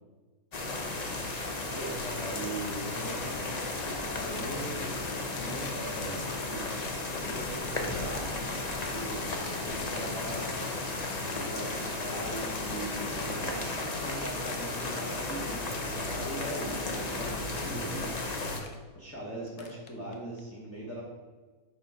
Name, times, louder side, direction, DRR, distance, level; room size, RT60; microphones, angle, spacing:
sound 1, 0.5-18.6, left 2 dB, 45° left, 0.5 m, -34 dB
voice 1, 1.7-3.5 4.1-5.1 5.4-6.7 7.1-8.6 8.9-10.5 11.5-18.1 18.9-21.0, right 1 dB, 10° left, -6 dB, 0.8 m, -40 dB
sound 2, 2.6-3.3 3.6-3.9 4.2-4.4 4.8-6.9 7.2-8.8 9.2-10.1 10.4-10.7 11.0-11.3 11.6-12.0 12.4-13.3 13.6-14.0 14.3-14.6 15.0-15.8 16.2-16.5 16.9-17.2 18.1-18.2 18.5-18.8 19.5-20.4, left 6 dB, 70° left, 1.1 m, -48 dB
6.8 x 3.9 x 4.7 m, 1.3 s
omnidirectional pair, 1.6 m